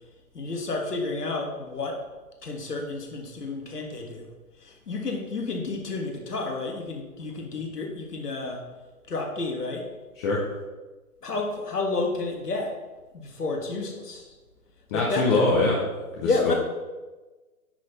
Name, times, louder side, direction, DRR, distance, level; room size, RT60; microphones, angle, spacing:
voice 1, 0.3-2.0 2.4-4.3 4.6-8.6 9.1-9.9 11.2-12.8 13.1-14.3 14.9-15.5 16.2-16.5, left 3 dB, 85° left, 2 dB, 1.7 m, -30 dB
voice 2, 14.9-15.8 16.2-16.3, left 2 dB, 20° left, -4 dB, 0.7 m, -22 dB
9.9 x 4.2 x 4.1 m, 1.2 s
hypercardioid pair, 140°, 46 cm